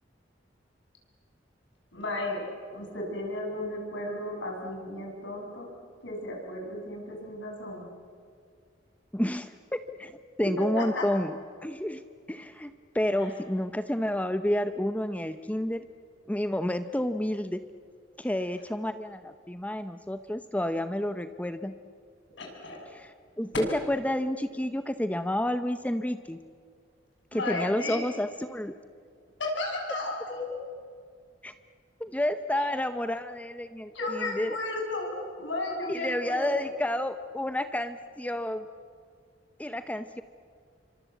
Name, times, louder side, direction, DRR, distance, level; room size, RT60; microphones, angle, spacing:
voice 1, 1.9-2.4 2.7-5.7 6.0-7.9 10.6-11.0 13.2-13.4 22.4-22.9 27.3-28.0 29.4-30.5 32.5-32.7 33.9-36.7, left 2 dB, 70° left, 0 dB, 7.4 m, -34 dB
voice 2, 9.1-11.3 11.6-15.8 16.3-17.6 18.2-21.7 22.9-23.1 23.4-26.4 27.3-28.7 31.4-31.5 32.0-34.6 35.9-38.7 39.6-40.2, left 1 dB, 10° left, 10 dB, 0.7 m, -30 dB
28.0 x 25.0 x 8.2 m, 2.2 s
head